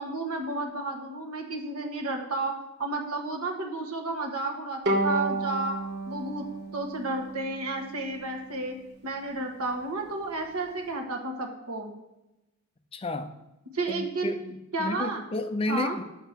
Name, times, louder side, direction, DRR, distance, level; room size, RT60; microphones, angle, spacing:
voice 1, 0.0-2.5 2.8-5.8 6.1-6.4 6.7-8.7 9.0-11.9 13.7-14.3 14.7-15.2 15.7-16.0, right 2 dB, 80° right, 3 dB, 1.5 m, -32 dB
Bowed string instrument, 4.9-8.2, right 2 dB, 50° right, 1.2 m, -31 dB
voice 2, 12.9-13.4 13.9-16.0, left 2 dB, 25° left, 9 dB, 0.5 m, -32 dB
8.9 x 6.6 x 4.6 m, 0.97 s
head